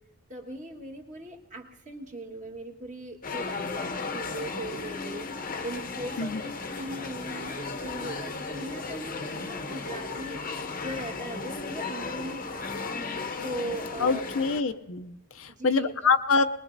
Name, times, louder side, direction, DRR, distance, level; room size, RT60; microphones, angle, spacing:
voice 1, 0.3-12.7 13.4-14.2 15.5-15.9, right 1 dB, 35° right, 1 dB, 1.5 m, -39 dB
sound 1, 3.2-14.6, left 4 dB, 40° left, 0.8 m, -35 dB
voice 2, 14.0-16.4, left 4 dB, 65° left, 9 dB, 0.5 m, -25 dB
21.5 x 20.5 x 2.6 m, 0.99 s
head